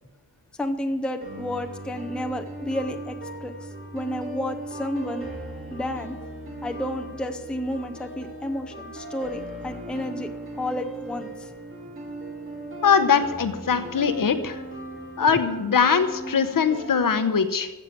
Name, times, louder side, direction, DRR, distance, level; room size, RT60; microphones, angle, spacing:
voice 1, 0.6-3.5 3.9-5.3 5.7-6.2 6.6-10.3 10.6-11.5, left 1 dB, ahead, 5 dB, 0.7 m, -31 dB
sound 1, 1.2-17.2, right 2 dB, 30° right, 2.6 m, -38 dB
voice 2, 12.8-14.6 15.2-17.7, left 6 dB, 55° left, 10 dB, 0.9 m, -21 dB
14.5 x 6.7 x 7.4 m, 1.1 s
wide cardioid pair, 160°, 40 cm